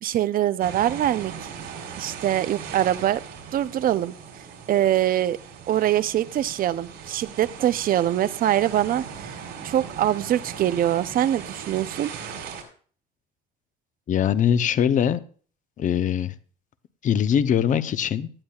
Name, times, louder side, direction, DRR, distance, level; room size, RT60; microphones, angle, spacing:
voice 1, 0.0-1.3 2.0-3.2 3.5-4.2 4.7-5.4 5.7-9.4 9.6-12.1, right 12 dB, 50° right, 15 dB, 0.6 m, -23 dB
sound 1, 0.6-12.6, right 7 dB, 70° right, 4.1 m, -39 dB
voice 2, 14.1-15.2 15.8-16.3 17.0-18.3, left 9 dB, 45° left, 13 dB, 0.8 m, -22 dB
17.5 x 11.5 x 2.4 m, 0.43 s
cardioid pair, 120°, 19 cm